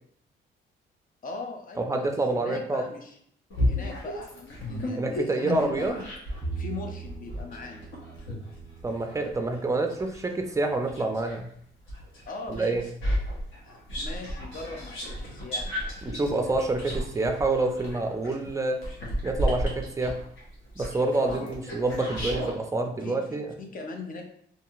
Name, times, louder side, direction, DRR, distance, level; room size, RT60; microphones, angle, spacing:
voice 1, 1.2-3.2 3.7-6.0 6.6-7.9 12.3-12.8 13.6-15.7 21.2-21.6 23.0-24.2, left 3 dB, 45° left, 3 dB, 0.6 m, -40 dB
voice 2, 1.8-2.8 5.0-5.9 8.8-11.5 12.5-12.8 16.0-18.8 19.2-20.2 20.8-23.5, right 2 dB, 15° right, 4 dB, 0.4 m, -27 dB
sound 1, 3.5-6.5 7.0-11.4 11.9-22.6, equal, 75° left, 1.0 m, -33 dB
Bowed string instrument, 6.4-12.7, right 5 dB, 10° left, 0.8 m, -42 dB
2.8 x 2.6 x 2.4 m, 0.65 s
cardioid pair, 90°, 20 cm